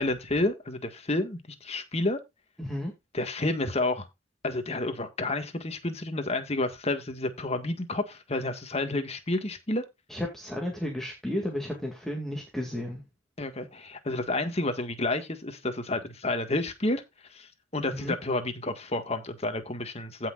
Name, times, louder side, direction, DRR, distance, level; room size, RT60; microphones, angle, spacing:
voice 1, 0.0-2.2 3.1-4.1 4.4-9.8 13.4-17.0 17.3-20.3, left 2 dB, 30° left, 1.7 m, -30 dB
voice 2, 2.6-2.9 10.1-13.0 17.9-18.2, left 1 dB, ahead, 2.2 m, -33 dB
16.5 x 6.0 x 2.4 m
head